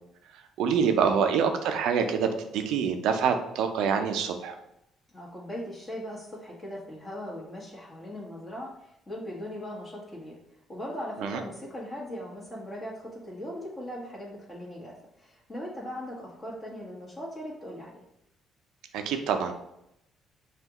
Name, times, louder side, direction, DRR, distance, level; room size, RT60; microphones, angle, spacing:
voice 1, 0.6-4.5 11.2-11.4 18.9-19.5, right 6 dB, 80° right, 6 dB, 0.5 m, -26 dB
voice 2, 5.1-10.4 10.7-18.0, equal, 30° left, -5 dB, 1.4 m, -39 dB
5.6 x 2.4 x 3.0 m, 0.80 s
cardioid pair, 80°, 0 cm